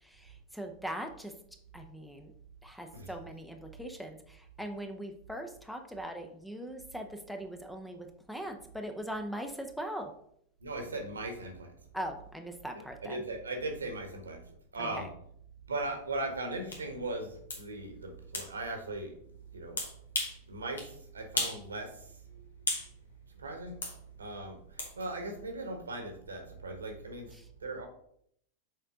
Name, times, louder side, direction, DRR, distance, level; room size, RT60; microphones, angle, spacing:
voice 1, 0.5-1.3 1.7-2.3 2.6-4.2 4.6-10.1 11.9-13.2 14.8-15.1 27.3-27.4, equal, ahead, 5 dB, 0.7 m, -40 dB
voice 2, 10.6-11.7 13.0-14.4 14.7-15.1 15.7-19.1 19.5-19.8 20.5-20.8 21.1-21.9 23.4-23.8 24.2-24.6 25.0-27.3 27.6-27.9, right 2 dB, 75° right, 4 dB, 1.3 m, -38 dB
sound 1, 16.7-16.8 17.5-17.6 18.3-18.5 19.8-20.4 20.8-20.9 21.4-21.6 22.0-22.9 23.8-24.0 24.8-24.9, left 2 dB, 70° left, 1.5 m, -34 dB
6.7 x 4.4 x 3.7 m, 0.68 s
figure-of-eight pair, 90°, 0 cm